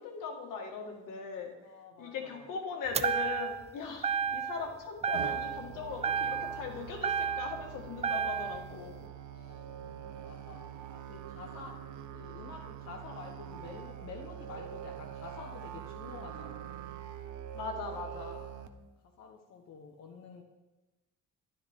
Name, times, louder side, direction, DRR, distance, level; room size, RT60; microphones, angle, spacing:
voice 1, 0.0-1.5 2.0-9.0 17.5-18.5, left 5 dB, 80° left, 2 dB, 1.9 m, -39 dB
voice 2, 1.6-2.5 9.3-11.8 12.1-16.9 18.7-18.9 19.2-20.4, left 5 dB, 60° left, 1 dB, 1.1 m, -49 dB
sound 1, 2.9-3.7 4.0-4.7 5.0-5.7 6.0-7.7 8.0-8.7, right 6 dB, 20° right, 0.3 m, -32 dB
Musical instrument, 5.1-18.7, right 10 dB, 65° right, 0.8 m, -44 dB
12.0 x 11.5 x 3.7 m, 1.1 s
cardioid pair, 135°, 31 cm